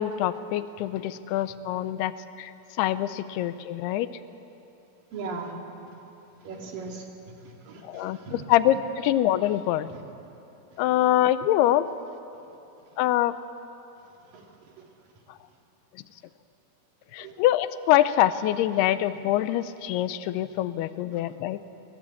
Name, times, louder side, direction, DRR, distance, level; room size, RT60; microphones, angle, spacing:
voice 1, 0.0-2.1 2.4-2.5 2.8-4.1 7.9-9.9 10.8-11.9 13.0-13.3 17.1-21.6, left 13 dB, 80° left, 13 dB, 2.7 m, -24 dB
voice 2, 5.1-5.5 6.4-7.0 7.7-8.8 17.2-17.3, right 4 dB, 60° right, 1 dB, 3.9 m, -38 dB
23.5 x 20.5 x 8.5 m, 3.0 s
omnidirectional pair, 4.7 m